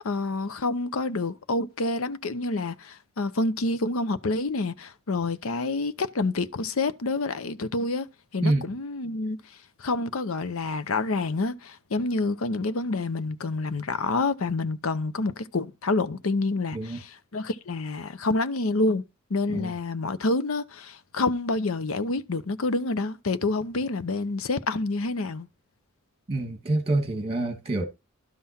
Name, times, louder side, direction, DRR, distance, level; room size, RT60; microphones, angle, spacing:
voice 1, 0.0-8.1 8.3-9.4 9.8-19.0 19.3-25.5, left 3 dB, 80° left, 0.7 m, -28 dB
voice 2, 26.3-27.8, right 2 dB, 30° right, 1.8 m, -26 dB
12.0 x 5.7 x 4.3 m
head